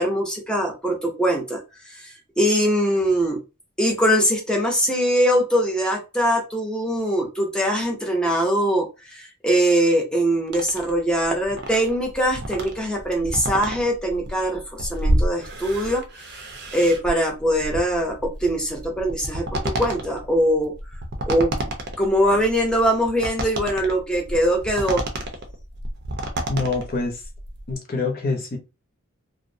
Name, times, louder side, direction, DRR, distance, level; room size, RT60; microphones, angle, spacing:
voice 1, 0.0-1.6 1.9-3.4 3.8-20.7 21.3-21.7 22.0-25.0, equal, 5° left, 0.6 m, -22 dB
sound 1, 10.5-27.7, right 1 dB, 50° right, 0.5 m, -30 dB
voice 2, 26.5-27.2 27.7-28.6, left 3 dB, 45° left, 0.6 m, -25 dB
2.4 x 2.0 x 2.6 m
head